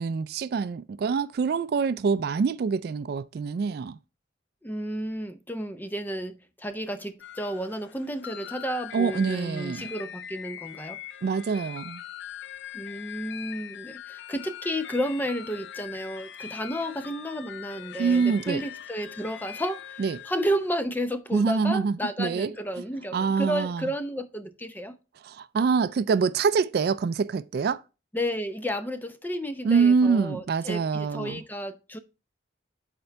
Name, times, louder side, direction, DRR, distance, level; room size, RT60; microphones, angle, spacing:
voice 1, 0.0-4.0 8.9-9.9 11.2-12.0 18.0-18.6 20.0-20.2 21.3-22.5 23.1-23.9 25.2-27.8 29.6-31.4, right 5 dB, 55° right, 0.3 m, -25 dB
voice 2, 4.6-11.0 12.7-24.9 28.1-32.0, equal, 10° left, 0.6 m, -32 dB
sound 1, 7.2-20.7, left 10 dB, 70° left, 0.4 m, -42 dB
8.1 x 4.4 x 4.4 m
head